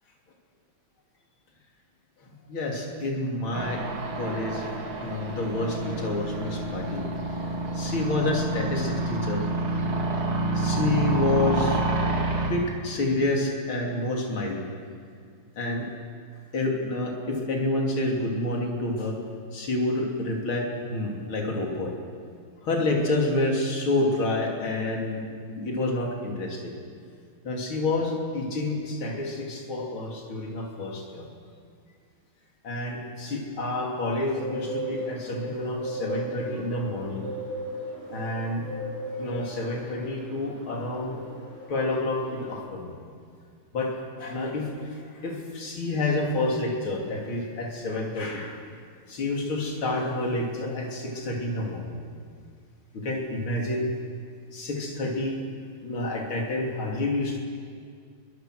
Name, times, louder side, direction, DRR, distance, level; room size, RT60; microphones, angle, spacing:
voice 1, 2.2-3.8 4.1-4.6 5.0-7.1 7.7-9.5 10.5-11.8 12.1-12.2 12.5-14.7 15.6-15.9 16.5-19.2 19.5-21.9 22.6-25.2 25.5-26.7 27.4-31.3 32.6-37.3 38.1-38.7 39.2-41.2 41.7-43.0 43.7-48.6 49.1-52.0 52.9-53.9 54.5-55.4 55.8-57.4, left 2 dB, 65° left, -1 dB, 3.8 m, -28 dB
sound 1, 3.5-12.5, right 2 dB, 70° right, 3.1 m, -28 dB
Bird, 34.3-42.5, equal, 20° left, 7.6 m, -37 dB
22.5 x 21.0 x 6.4 m, 2.2 s
omnidirectional pair, 2.4 m